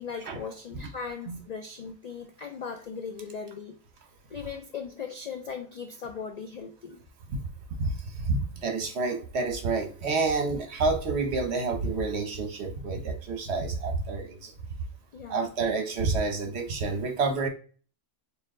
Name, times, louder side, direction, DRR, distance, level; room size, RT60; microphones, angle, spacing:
voice 1, 0.0-3.8 4.3-7.0 15.1-15.5, left 6 dB, 80° left, 5 dB, 0.3 m, -38 dB
voice 2, 8.2-14.5 15.3-17.5, right 3 dB, 60° right, 4 dB, 1.1 m, -28 dB
4.4 x 2.5 x 3.7 m, 0.40 s
omnidirectional pair, 1.3 m